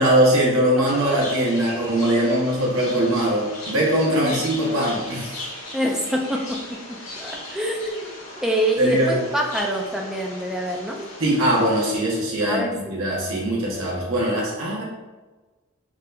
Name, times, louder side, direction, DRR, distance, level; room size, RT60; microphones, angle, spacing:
voice 1, 0.0-5.4 8.8-9.2 11.2-12.6 12.9-14.8, right 1 dB, 70° right, -4 dB, 1.0 m, -21 dB
sound 1, 0.8-12.0, left 1 dB, 80° left, 1.1 m, -38 dB
voice 2, 5.7-6.6 7.2-11.0 12.4-12.9, equal, ahead, 0 dB, 0.3 m, -26 dB
3.5 x 2.4 x 3.2 m, 1.2 s
head